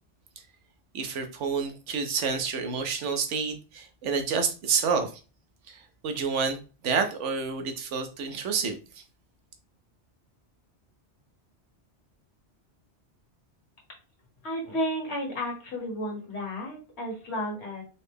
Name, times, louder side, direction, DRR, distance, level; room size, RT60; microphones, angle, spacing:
voice 1, 0.9-5.1 5.7-6.6 6.8-9.0, right 5 dB, 85° right, 6 dB, 1.0 m, -29 dB
voice 2, 14.4-17.8, equal, 65° left, -1 dB, 1.6 m, -32 dB
4.1 x 2.1 x 3.3 m, 0.33 s
omnidirectional pair, 1.2 m